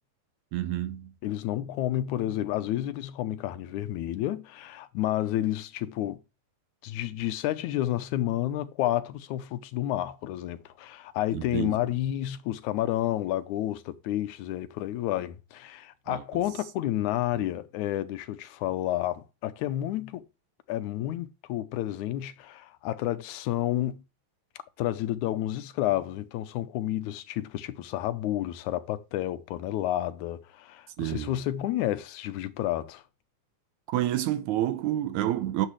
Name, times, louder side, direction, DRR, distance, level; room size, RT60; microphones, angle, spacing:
voice 1, 0.5-1.1 11.3-11.8 16.1-16.2 17.4-17.5 31.0-31.3 33.9-35.7, right 13 dB, 80° right, 2.1 m, -29 dB
voice 2, 1.2-6.2 6.8-20.2 20.7-24.0 24.8-33.0, left 13 dB, 80° left, 2.1 m, -30 dB
10.0 x 7.6 x 3.2 m
omnidirectional pair, 3.5 m